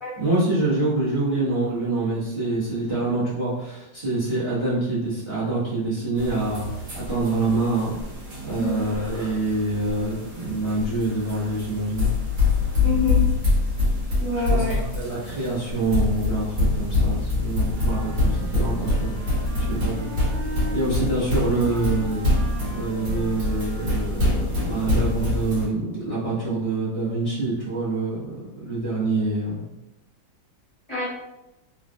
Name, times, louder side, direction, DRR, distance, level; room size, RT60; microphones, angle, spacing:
voice 1, 0.2-6.6 6.9-8.0 8.4-12.1 14.5-20.1 20.7-22.2 22.7-28.3 28.6-29.6, right 2 dB, 25° right, -9 dB, 0.7 m, -26 dB
sound 1, 6.2-25.7, left 2 dB, 55° right, 1.3 m, -25 dB
voice 2, 12.8-13.2 14.2-14.8 30.9-31.0, left 2 dB, 30° left, -10 dB, 0.6 m, -26 dB
Wind instrument woodwind instrument, 17.7-20.9 21.6-24.3, right 1 dB, 75° right, 1.2 m, -38 dB
3.3 x 2.3 x 2.5 m, 0.96 s
omnidirectional pair, 2.0 m